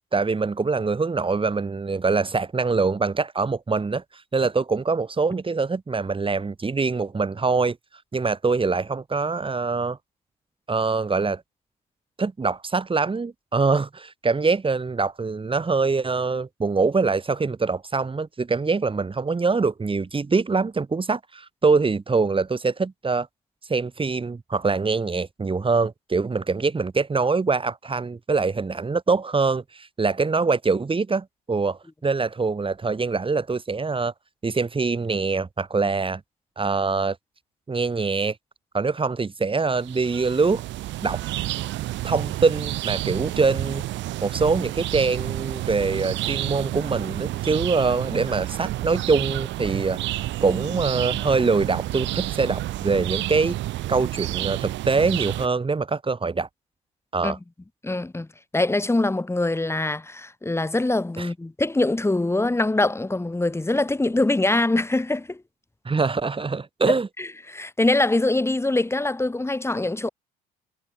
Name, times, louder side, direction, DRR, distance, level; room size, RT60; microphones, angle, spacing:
voice 1, 0.1-4.0 4.3-7.8 8.1-10.0 10.7-11.4 12.2-23.3 23.7-34.1 34.4-36.2 36.6-37.2 37.7-38.4 38.7-40.6 41.0-41.2 42.0-43.8 44.2-50.0 50.4-53.6 53.9-56.5 57.1-57.4 61.2-61.3 65.8-67.1, right 4 dB, 25° right, 6.0 m, -24 dB
sound 1, 39.7-55.5, right 16 dB, 60° right, 2.7 m, -30 dB
voice 2, 57.8-58.3 58.5-65.4 67.2-70.1, left 2 dB, 10° left, 3.1 m, -23 dB
hypercardioid pair, 65°, 21 cm